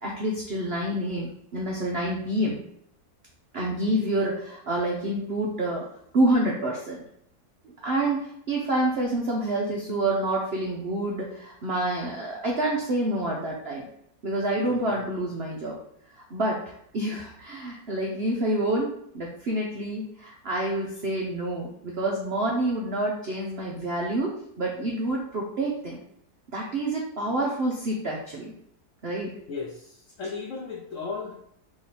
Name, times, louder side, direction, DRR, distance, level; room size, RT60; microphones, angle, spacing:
voice 1, 0.0-2.6 3.5-5.8 6.1-7.0 7.8-13.9 14.2-15.8 16.1-26.0 26.5-28.5 29.0-29.3, right 1 dB, 70° right, -2 dB, 0.5 m, -28 dB
voice 2, 29.5-31.3, left 4 dB, 65° left, -3 dB, 0.8 m, -35 dB
3.6 x 3.0 x 4.1 m, 0.72 s
omnidirectional pair, 2.0 m